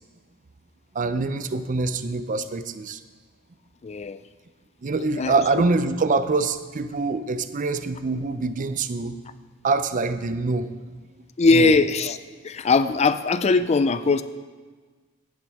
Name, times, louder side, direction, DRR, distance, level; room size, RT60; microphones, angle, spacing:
voice 1, 0.9-3.0 4.8-9.2 9.6-10.7 11.5-11.7, right 3 dB, 40° right, 11 dB, 0.5 m, -25 dB
voice 2, 3.8-4.2 5.2-5.3 11.4-12.2 12.4-14.2, left 3 dB, 30° left, 13 dB, 0.4 m, -20 dB
16.5 x 8.9 x 3.5 m, 1.4 s
head